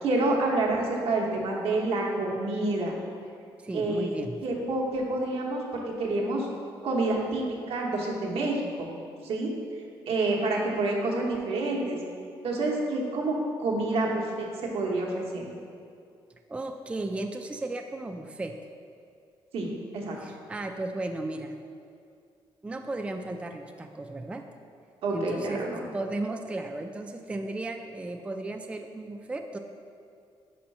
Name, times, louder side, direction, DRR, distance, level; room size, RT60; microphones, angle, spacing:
voice 1, 0.0-3.0 3.7-4.2 4.4-6.5 6.8-8.9 9.2-9.5 10.1-12.0 12.4-15.5 19.5-20.2 25.0-25.8, right 2 dB, 75° right, -1 dB, 1.0 m, -28 dB
voice 2, 3.6-4.4 16.5-18.6 20.2-21.6 22.6-24.4 25.1-25.6 25.9-29.6, right 2 dB, 10° right, 5 dB, 0.3 m, -35 dB
4.7 x 4.3 x 5.3 m, 2.4 s
cardioid pair, 95°, 10 cm